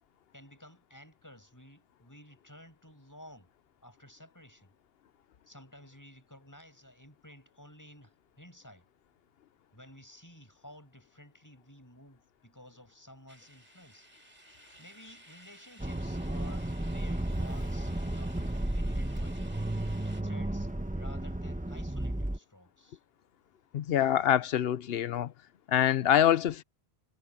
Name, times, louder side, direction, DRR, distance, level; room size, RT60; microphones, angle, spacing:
voice 1, 0.3-3.5 3.8-4.7 5.5-8.8 9.7-14.1 14.8-18.5 18.7-19.5 20.2-23.0, equal, 15° left, 7.2 m, -54 dB
sound 1, 13.3-20.2, right 1 dB, 40° right, 7.6 m, -56 dB
Accelerating revving vroom, 15.8-22.4, right 1 dB, 10° right, 1.0 m, -33 dB
voice 2, 23.7-25.3 25.7-26.6, left 10 dB, 70° left, 0.9 m, -25 dB
omnidirectional pair, 1.1 m